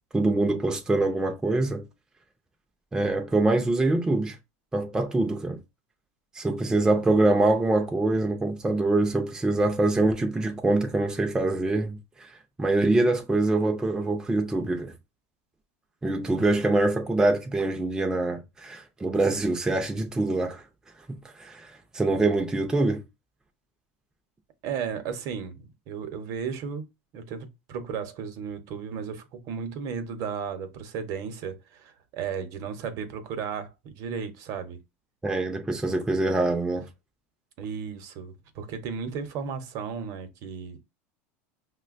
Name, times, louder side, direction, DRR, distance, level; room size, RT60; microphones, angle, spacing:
voice 1, 0.1-1.8 2.9-4.4 4.7-5.6 6.3-12.3 12.6-14.9 16.0-20.6 21.1-23.0 35.2-36.9, right 2 dB, 10° right, 0.5 m, -24 dB
voice 2, 24.6-26.9 27.1-34.8 37.6-40.8, right 6 dB, 50° right, 0.8 m, -34 dB
5.4 x 2.2 x 2.5 m
supercardioid pair, 125°, 7 cm